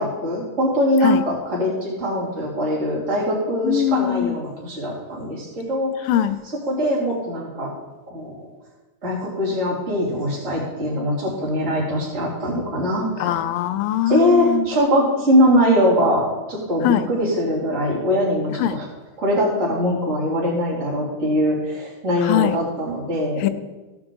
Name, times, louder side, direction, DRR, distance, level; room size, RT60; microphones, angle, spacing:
voice 1, 0.0-5.9 6.4-7.7 8.1-8.5 9.0-13.4 14.1-18.8 19.2-23.5, equal, 25° right, -6 dB, 2.9 m, -22 dB
voice 2, 3.6-4.3 6.1-6.4 13.2-14.6 16.8-17.1 18.6-18.8 22.3-22.6 23.4-23.5, left 11 dB, 85° left, 10 dB, 2.3 m, -21 dB
16.0 x 7.3 x 3.8 m, 1.1 s
omnidirectional pair, 3.9 m